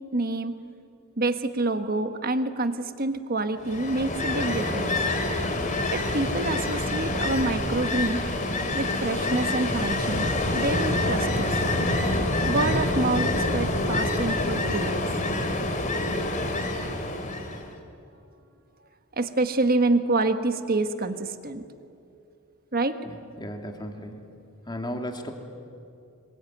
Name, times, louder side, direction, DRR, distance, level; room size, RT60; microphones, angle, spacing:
voice 1, 0.1-0.6 1.2-4.9 5.9-8.2 8.7-11.5 12.4-15.1 19.2-21.6 22.7-23.0, right 2 dB, 40° right, 9 dB, 1.5 m, -27 dB
Ocean, 3.6-17.7, left 2 dB, 35° left, 2.7 m, -26 dB
voice 2, 23.0-24.2 24.7-25.3, equal, 20° left, 4 dB, 2.5 m, -35 dB
25.5 x 22.5 x 9.5 m, 2.6 s
head